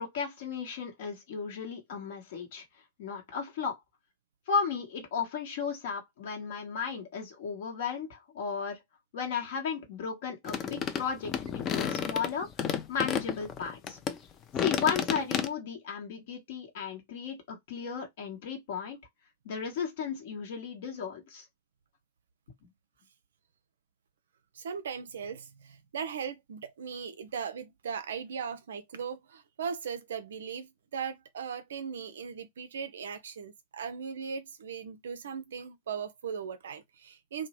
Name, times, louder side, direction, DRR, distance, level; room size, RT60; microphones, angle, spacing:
voice 1, 0.0-2.6 3.0-3.8 4.5-8.8 9.1-12.5 12.9-14.0 14.6-19.0 19.4-21.4, left 6 dB, 55° left, 1.0 m, -34 dB
sound 1, 10.4-14.2 14.5-15.5, left 7 dB, 30° left, 0.4 m, -31 dB
voice 2, 24.5-37.5, right 7 dB, 65° right, 0.3 m, -38 dB
2.7 x 2.1 x 2.9 m
figure-of-eight pair, 90°, 0 cm